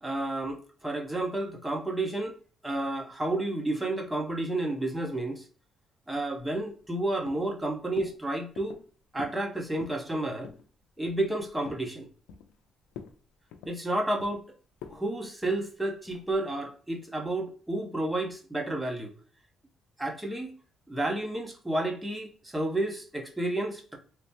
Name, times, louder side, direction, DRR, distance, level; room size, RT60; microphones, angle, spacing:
voice 1, 0.0-2.3 2.6-5.4 6.1-8.8 9.1-10.5 11.0-12.1 13.7-14.4 14.9-19.1 20.0-20.5 20.9-24.0, right 1 dB, 10° right, 0.8 m, -31 dB
sound 1, 6.7-7.0 7.3-7.6 8.0-8.2 8.6-8.9 9.2-9.4 9.7-10.0 10.4-10.7 11.0-11.9 12.3-12.6 12.9-13.2 13.5-14.4 14.8-15.0 15.4-15.6 16.1-16.4, left 7 dB, 90° left, 0.4 m, -46 dB
3.3 x 2.0 x 2.8 m
supercardioid pair, 75°, 0 cm